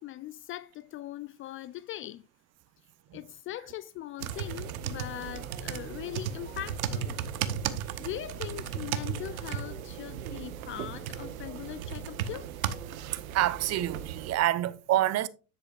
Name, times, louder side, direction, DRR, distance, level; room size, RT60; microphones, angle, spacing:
voice 1, 0.0-2.2 3.1-7.2 8.0-12.5, left 14 dB, 30° left, 0.4 m, -40 dB
sound 1, 4.2-14.4, right 9 dB, 75° right, 1.0 m, -36 dB
voice 2, 13.3-15.3, right 13 dB, 40° right, 0.8 m, -27 dB
10.0 x 7.8 x 2.4 m
hypercardioid pair, 80°, 42 cm